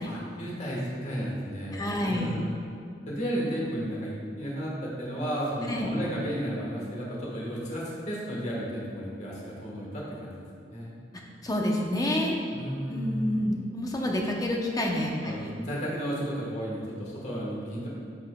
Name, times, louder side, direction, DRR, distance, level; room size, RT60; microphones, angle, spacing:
voice 1, 0.0-2.6 3.1-10.9 12.5-13.5 15.2-17.9, equal, 40° left, -5 dB, 1.4 m, -33 dB
voice 2, 1.7-2.4 5.7-5.9 11.4-12.4 12.9-15.1 15.4-15.5, left 1 dB, 20° left, 0 dB, 0.7 m, -28 dB
9.5 x 5.5 x 2.3 m, 2.3 s
head